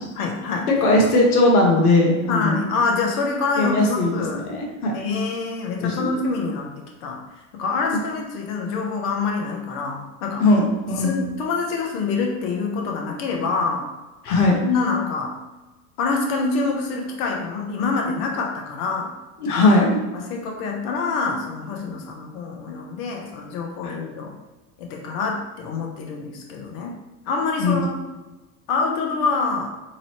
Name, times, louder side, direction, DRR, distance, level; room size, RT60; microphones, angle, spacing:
voice 1, 0.2-0.7 2.3-4.4 4.9-6.7 7.0-7.2 7.5-10.4 11.0-13.8 14.6-15.3 16.0-19.1 20.1-24.3 24.8-27.0 27.3-28.0 28.7-29.7, left 4 dB, 60° left, 0 dB, 0.8 m, -26 dB
voice 2, 0.8-2.6 3.6-4.9 5.8-6.2 10.4-11.1 14.2-14.5 19.4-20.0 23.8-23.9 27.6-27.8, left 2 dB, 85° left, 0 dB, 1.0 m, -19 dB
4.0 x 3.0 x 2.9 m, 1.1 s
hypercardioid pair, 85°, 44 cm